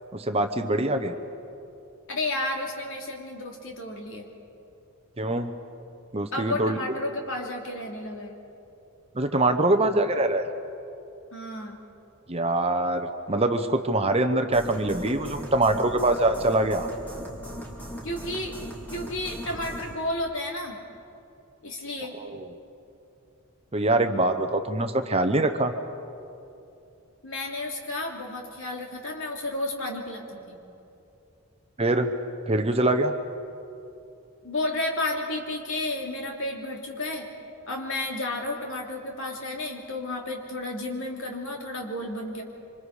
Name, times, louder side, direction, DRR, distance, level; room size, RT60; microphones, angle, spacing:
voice 1, 0.1-1.1 5.2-5.5 6.1-6.8 9.1-10.5 12.3-16.9 22.3-22.4 23.7-25.7 31.8-32.1 32.5-33.1, right 2 dB, 25° right, 7 dB, 0.9 m, -24 dB
voice 2, 2.1-4.3 6.3-8.3 11.3-11.8 18.0-18.5 18.9-20.8 21.6-22.2 27.2-30.5 34.4-37.3 37.7-42.4, left 2 dB, 60° left, 0 dB, 3.0 m, -32 dB
sound 1, 14.5-20.0, equal, 10° left, 2.7 m, -39 dB
26.5 x 25.5 x 4.9 m, 2.7 s
head